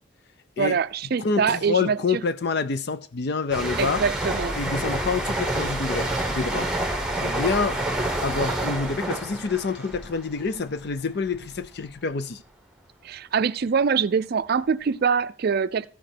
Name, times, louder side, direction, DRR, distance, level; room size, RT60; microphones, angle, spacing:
voice 1, 0.6-2.2 3.8-4.5 13.0-15.9, right 6 dB, 50° right, 0.4 m, -24 dB
voice 2, 1.2-4.0 4.6-6.7 7.2-7.8 8.2-12.4, left 4 dB, 55° left, 0.6 m, -27 dB
sound 1, 3.5-11.0 11.3-11.6, right 1 dB, 5° right, 1.1 m, -28 dB
14.5 x 5.1 x 4.3 m
head